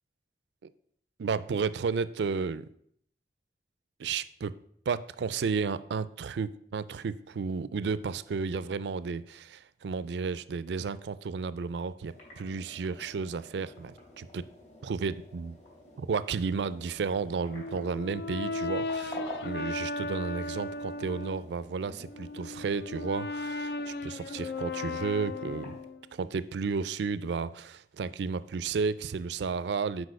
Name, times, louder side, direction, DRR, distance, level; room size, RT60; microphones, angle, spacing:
voice 1, 1.2-2.6 4.0-4.6 4.9-14.4 14.8-15.6 16.0-25.8 26.1-30.1, right 5 dB, 80° right, 0.4 m, -33 dB
sound 1, 12.0-25.9, left 2 dB, 40° left, 3.2 m, -50 dB
Brass instrument, 17.5-21.5 22.0-26.1, left 2 dB, 65° left, 0.4 m, -36 dB
6.2 x 4.8 x 6.3 m
head